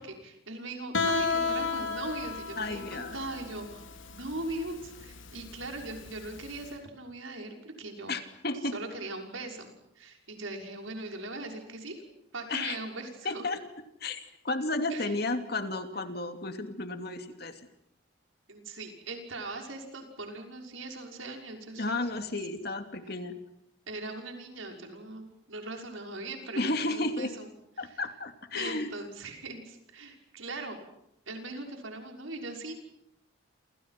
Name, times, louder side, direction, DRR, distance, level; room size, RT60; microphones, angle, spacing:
voice 1, 0.0-8.1 8.7-12.0 12.3-13.4 14.9-15.1 18.5-22.2 23.9-27.5 27.8-27.9 28.5-30.8 31.3-32.7, right 2 dB, 85° right, 3 dB, 6.1 m, -40 dB
Guitar, 0.9-6.6, left 4 dB, 75° left, 3.5 m, -33 dB
voice 2, 2.6-3.2 8.1-8.8 12.5-12.8 13.2-13.6 14.0-17.7 21.8-23.4 26.6-27.3 27.8-28.9, left 2 dB, 50° left, 7 dB, 2.8 m, -33 dB
29.5 x 28.0 x 6.0 m, 0.78 s
head